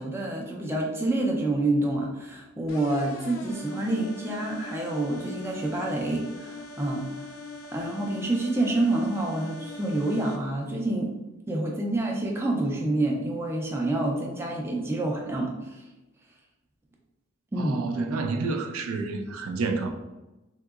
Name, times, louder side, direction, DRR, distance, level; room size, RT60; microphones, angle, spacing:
voice 1, 0.0-7.1 7.7-11.1 11.5-15.9 17.5-17.8, right 2 dB, 10° right, 0.4 m, -28 dB
sound 1, 2.7-10.4, left 3 dB, 70° left, 0.5 m, -41 dB
voice 2, 17.6-19.9, right 3 dB, 80° right, 0.4 m, -29 dB
3.6 x 2.8 x 2.3 m
head